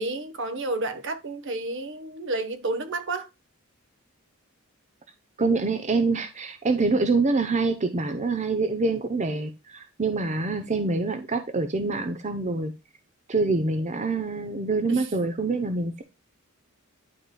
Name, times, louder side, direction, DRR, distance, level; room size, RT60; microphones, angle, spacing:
voice 1, 0.0-3.3 14.9-15.1, right 2 dB, 60° right, 1.1 m, -30 dB
voice 2, 5.4-12.7 13.3-16.0, right 3 dB, 35° right, 0.7 m, -25 dB
11.5 x 4.8 x 2.3 m
head